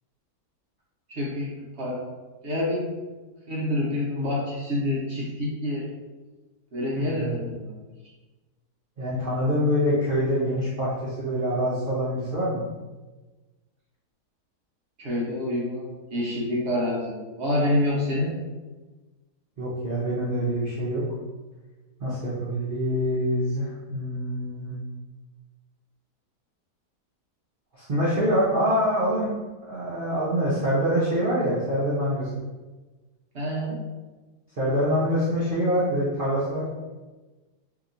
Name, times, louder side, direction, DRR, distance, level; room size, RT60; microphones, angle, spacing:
voice 1, 1.1-2.0 2.4-2.8 3.5-5.9 6.7-7.7 15.0-18.3 33.3-33.8, left 1 dB, 50° right, -6 dB, 0.9 m, -27 dB
voice 2, 7.0-7.4 9.0-12.6 19.6-21.0 22.0-24.7 27.7-29.4 29.7-32.3 34.6-36.7, equal, 80° right, -9 dB, 0.4 m, -25 dB
2.9 x 2.8 x 2.5 m, 1.2 s
omnidirectional pair, 1.8 m